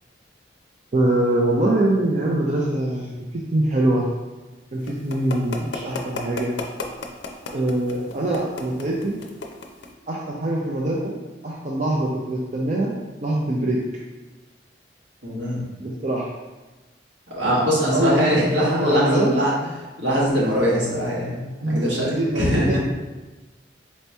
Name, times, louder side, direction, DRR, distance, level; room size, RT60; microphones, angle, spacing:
voice 1, 0.9-3.1 3.5-4.1 4.7-6.5 7.5-9.2 10.1-12.9 13.2-13.8 15.8-16.3 17.4-17.5 17.9-19.3 21.6-22.8, right 1 dB, 40° right, -4 dB, 0.4 m, -23 dB
sound 1, 4.9-9.9, left 3 dB, 75° left, 0.5 m, -32 dB
voice 2, 15.2-15.6 17.3-19.5 20.0-22.8, equal, 75° right, -6 dB, 1.4 m, -22 dB
4.2 x 2.8 x 3.3 m, 1.2 s
head